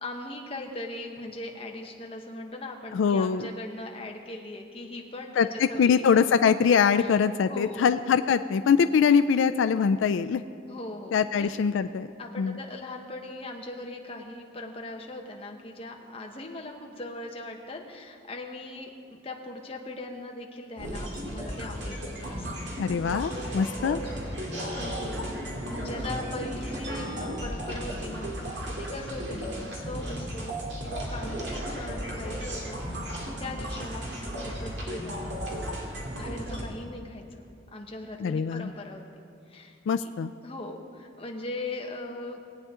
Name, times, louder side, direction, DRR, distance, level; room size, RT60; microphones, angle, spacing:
voice 1, 0.0-6.1 7.0-7.1 7.5-7.9 10.7-11.5 12.2-22.7 23.8-24.1 24.5-25.2 25.6-35.5 36.1-37.4 37.7-39.0 39.5-40.1 40.4-42.4, left 2 dB, 30° left, 1 dB, 1.1 m, -40 dB
voice 2, 2.9-3.4 5.4-10.4 11.1-12.1 12.4-12.6 22.8-24.0 38.2-38.7 39.9-40.3, left 6 dB, 85° left, 11 dB, 0.3 m, -23 dB
sound 1, 20.8-36.6, equal, 65° right, 2.2 m, -35 dB
20.0 x 8.8 x 3.7 m, 2.3 s
head